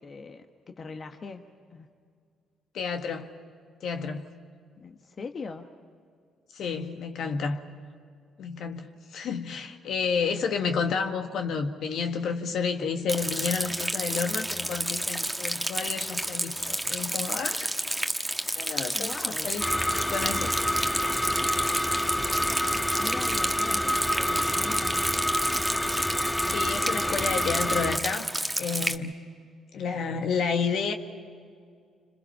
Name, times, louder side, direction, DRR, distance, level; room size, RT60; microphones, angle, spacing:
voice 1, 0.0-1.4 1.7-1.9 4.8-5.7 18.9-19.5 23.0-25.1 26.9-27.4, left 4 dB, 45° left, 5 dB, 1.3 m, -41 dB
voice 2, 2.7-3.3 3.8-4.3 6.5-7.6 8.4-17.7 18.5-19.6 19.9-20.9 26.5-28.3 28.6-29.1 29.7-30.9, left 5 dB, 65° left, 5 dB, 1.6 m, -30 dB
Rain, 13.1-29.0, right 1 dB, 5° right, 1.4 m, -31 dB
sound 1, 19.6-28.0, equal, 10° left, 1.6 m, -28 dB
28.5 x 26.0 x 5.6 m, 2.2 s
hypercardioid pair, 50°, 0 cm